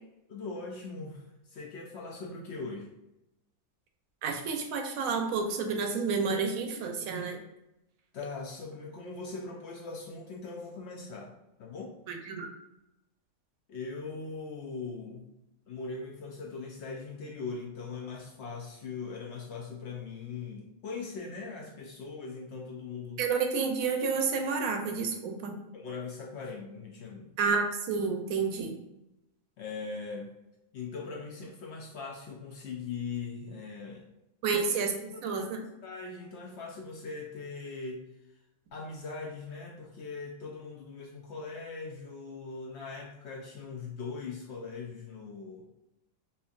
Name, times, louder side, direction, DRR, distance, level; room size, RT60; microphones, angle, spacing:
voice 1, 0.3-2.9 8.1-11.3 11.6-11.9 13.7-15.3 15.7-23.2 25.7-27.3 29.6-30.3 30.7-34.1 34.5-34.6 35.1-35.4 35.8-38.0 38.7-45.6, left 4 dB, 65° left, 0 dB, 0.7 m, -40 dB
voice 2, 4.2-7.4 12.1-12.5 23.2-25.6 27.4-28.8 34.4-35.6, right 5 dB, 80° right, 4 dB, 1.0 m, -30 dB
4.4 x 2.7 x 2.4 m, 0.91 s
omnidirectional pair, 1.5 m